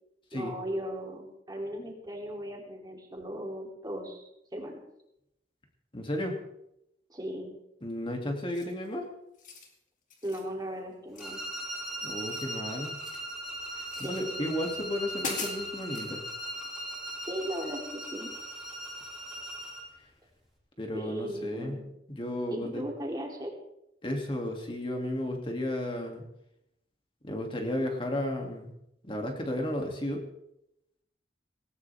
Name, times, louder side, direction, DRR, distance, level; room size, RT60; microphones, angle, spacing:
voice 1, 0.3-4.8 7.1-7.5 10.2-11.4 13.9-14.5 17.3-18.3 20.9-21.9 22.5-23.5, equal, 20° right, 0 dB, 3.2 m, -37 dB
voice 2, 5.9-6.4 7.8-9.1 12.0-12.9 13.8-16.2 20.8-21.8 22.1-22.8 24.0-26.2 27.2-28.7 29.0-30.2, left 1 dB, 30° left, 2 dB, 2.7 m, -33 dB
sound 1, 8.5-8.9 9.3-9.7 10.1-10.5 11.1-11.8 12.1-13.3 13.9-14.3 14.8-14.9 15.2-16.1, left 4 dB, 45° left, 2.6 m, -41 dB
sound 2, 11.2-19.9, equal, ahead, 3.9 m, -39 dB
18.5 x 18.5 x 3.6 m, 0.81 s
head